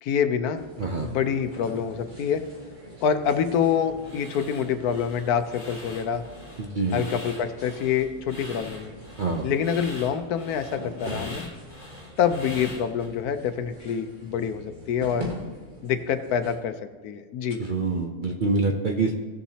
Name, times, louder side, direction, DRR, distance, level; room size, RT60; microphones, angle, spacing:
voice 1, 0.0-0.7 1.0-2.4 3.0-6.2 6.9-8.9 9.4-11.4 12.2-15.3 15.8-16.8 17.0-17.6, left 7 dB, 80° left, 10 dB, 1.2 m, -26 dB
sound 1, 0.5-16.6, equal, 30° right, 1.6 m, -43 dB
voice 2, 0.8-1.1 6.6-7.0 9.2-9.5 17.6-19.2, right 3 dB, 50° right, 2 dB, 0.6 m, -26 dB
sound 2, 4.0-13.1, left 2 dB, 25° left, 2.6 m, -43 dB
16.0 x 7.0 x 2.8 m, 1.4 s
omnidirectional pair, 1.6 m